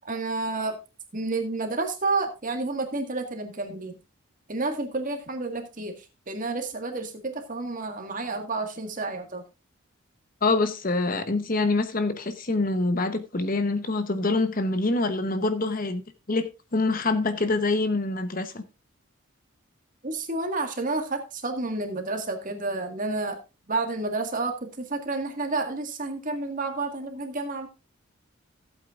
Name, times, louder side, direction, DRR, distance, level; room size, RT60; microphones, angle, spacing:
voice 1, 0.0-0.8 1.1-4.0 4.5-9.4 20.0-23.4 23.7-27.7, right 3 dB, 40° right, 1.7 m, -30 dB
voice 2, 10.4-16.0 16.3-18.6, left 3 dB, 40° left, 0.9 m, -25 dB
15.0 x 8.4 x 2.4 m
head